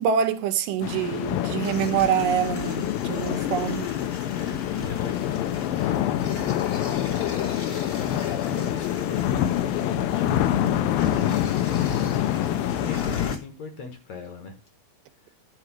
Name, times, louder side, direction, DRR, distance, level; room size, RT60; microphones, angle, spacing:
voice 1, 0.0-4.0, right 8 dB, 75° right, 2.3 m, -25 dB
sound 1, 0.8-13.4, left 11 dB, 85° left, 2.6 m, -26 dB
sound 2, 1.6-13.4, left 2 dB, 40° left, 1.0 m, -40 dB
voice 2, 4.2-7.4 8.5-14.6 15.2-15.4, left 5 dB, 60° left, 2.2 m, -40 dB
10.0 x 4.5 x 5.9 m
omnidirectional pair, 4.0 m